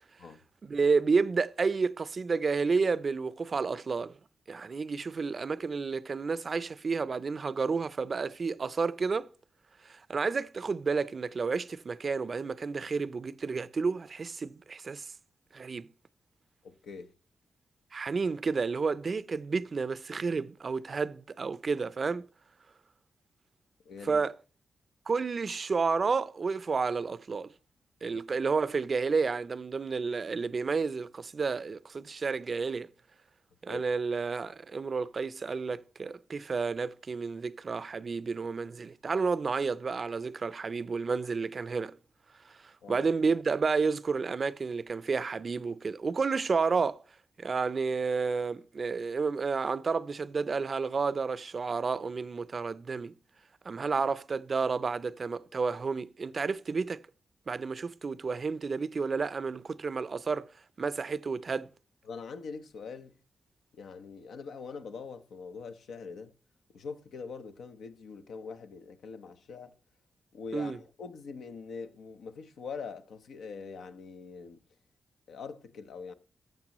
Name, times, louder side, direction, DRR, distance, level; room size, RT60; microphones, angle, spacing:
voice 1, 0.6-4.2 4.5-9.3 9.8-15.1 15.5-15.9 17.9-22.3 24.0-24.3 25.1-27.5 28.0-32.9 33.6-42.0 42.6-47.0 47.4-53.1 53.7-57.0 57.5-60.5 60.8-61.7 70.5-70.8, right 4 dB, 50° right, 0.4 m, -31 dB
voice 2, 16.6-17.1 23.8-24.3 28.1-28.2 33.7-33.8 42.8-43.1 62.0-63.2 63.7-66.3 66.7-69.7 70.3-74.6 75.3-76.1, left 5 dB, 85° left, 0.8 m, -43 dB
14.5 x 6.6 x 3.0 m
cardioid pair, 60°, 0 cm